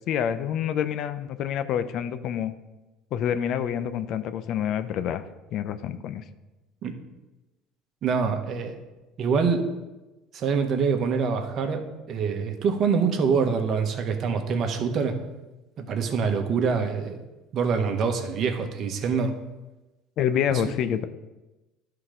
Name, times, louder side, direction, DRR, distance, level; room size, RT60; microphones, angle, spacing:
voice 1, 0.1-2.5 3.1-5.2 5.5-6.2 20.2-21.0, left 9 dB, 60° left, 12 dB, 0.6 m, -27 dB
voice 2, 8.0-8.8 9.2-9.7 10.3-15.2 15.8-17.2 17.5-19.3 20.5-20.6, right 5 dB, 50° right, 6 dB, 1.2 m, -25 dB
11.0 x 3.9 x 5.0 m, 1.1 s
supercardioid pair, 95°, 0 cm